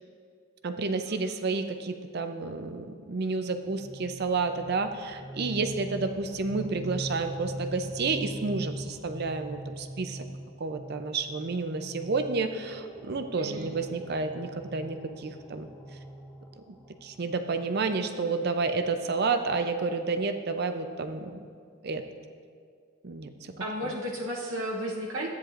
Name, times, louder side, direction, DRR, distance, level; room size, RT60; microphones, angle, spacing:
voice 1, 0.6-10.3 10.6-15.7 16.6-16.8 17.0-21.4 21.8-22.0 23.0-23.5, right 4 dB, 50° right, 8 dB, 0.6 m, -30 dB
sound 1, 3.3-18.0, right 1 dB, 5° right, 1.8 m, -42 dB
voice 2, 13.4-13.7 23.6-25.3, equal, 75° right, -3 dB, 1.0 m, -33 dB
13.5 x 9.4 x 2.5 m, 2.1 s
head